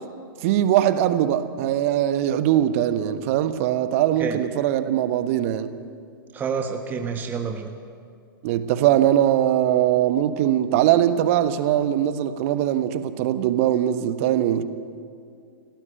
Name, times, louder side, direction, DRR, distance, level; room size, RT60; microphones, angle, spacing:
voice 1, 0.4-5.7 8.4-14.6, right 11 dB, 40° right, 1.3 m, -21 dB
voice 2, 6.3-7.7, right 6 dB, 15° right, 1.4 m, -28 dB
29.0 x 18.0 x 8.0 m
figure-of-eight pair, 110°, 12 cm